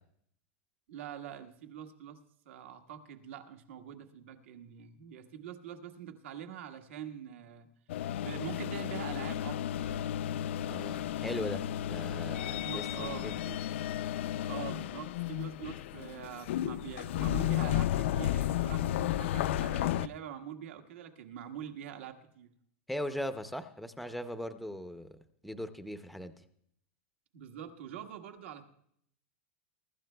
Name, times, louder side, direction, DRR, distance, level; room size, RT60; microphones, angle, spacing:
voice 1, 0.9-2.2 2.4-7.7 7.9-10.2 12.5-13.6 14.4-22.5 27.3-28.6, right 9 dB, 80° right, 6 dB, 1.4 m, -44 dB
sound 1, 7.9-20.1, left 12 dB, 70° left, 0.4 m, -33 dB
voice 2, 10.7-13.4 22.9-25.2 25.4-26.3, equal, ahead, 8 dB, 0.5 m, -39 dB
23.0 x 13.0 x 2.2 m, 0.68 s
supercardioid pair, 175°, 7 cm